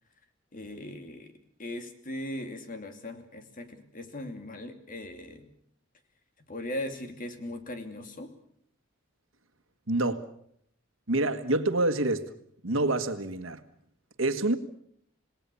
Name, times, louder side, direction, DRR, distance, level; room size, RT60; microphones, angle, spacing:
voice 1, 0.5-1.3 1.6-5.5 6.5-8.3, left 1 dB, 45° left, 2.7 m, -39 dB
voice 2, 9.9-10.3 11.1-12.3 12.6-13.6 14.2-14.6, right 2 dB, 85° right, 1.6 m, -27 dB
27.5 x 19.0 x 7.0 m
head